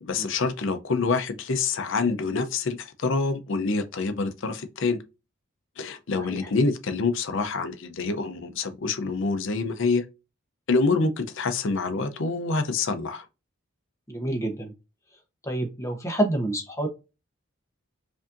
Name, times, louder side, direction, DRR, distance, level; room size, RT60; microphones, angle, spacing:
voice 1, 0.0-5.0 5.8-10.0 10.7-13.3, left 4 dB, 60° left, 0.6 m, -26 dB
voice 2, 14.1-14.7 15.4-16.9, right 1 dB, 15° left, 0.9 m, -28 dB
4.9 x 2.7 x 2.5 m
head